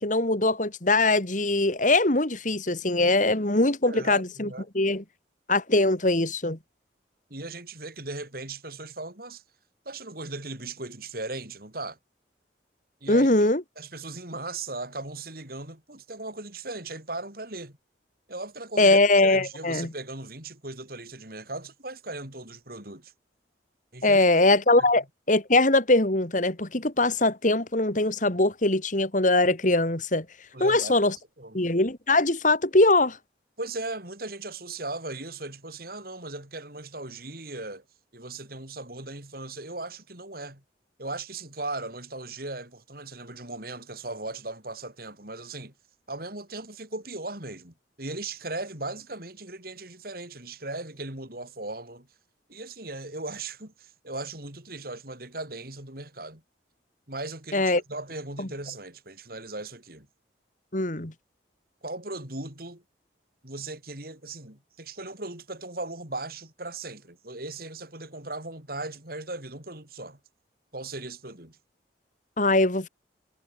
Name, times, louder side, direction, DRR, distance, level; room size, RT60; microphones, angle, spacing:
voice 1, 0.0-4.5 4.7-5.0 5.5-6.6 13.1-13.6 18.8-19.9 24.0-30.3 30.6-31.1 31.5-33.2 57.5-57.8 58.4-58.5 60.7-61.1 72.4-72.9, left 2 dB, 45° left, 2.4 m, -22 dB
voice 2, 3.9-4.6 7.3-9.4 9.8-12.0 13.0-17.8 18.3-23.1 23.9-24.2 30.5-31.0 31.4-31.6 33.6-37.8 38.1-40.6 41.0-45.7 46.1-52.1 52.5-56.4 57.1-60.1 61.8-62.8 63.4-70.2 70.7-71.6, right 2 dB, 55° right, 6.2 m, -38 dB
head